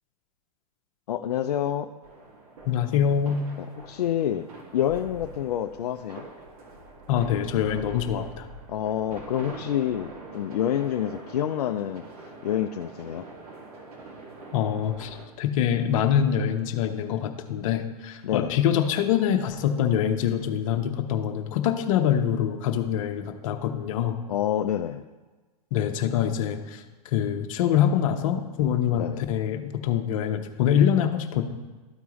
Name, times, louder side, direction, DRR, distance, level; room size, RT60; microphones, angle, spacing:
voice 1, 1.1-1.9 3.8-4.5 4.7-6.2 8.7-12.0 12.4-13.3 18.2-18.6 24.3-25.0 28.9-29.2, left 10 dB, 70° left, 6 dB, 0.4 m, -27 dB
sound 1, 2.0-15.2, right 2 dB, 65° right, 1.8 m, -44 dB
voice 2, 2.7-3.4 7.1-8.5 14.5-24.2 25.7-31.4, left 9 dB, 55° left, 6 dB, 0.9 m, -25 dB
13.0 x 4.7 x 3.0 m, 1.3 s
hypercardioid pair, 110°, 20 cm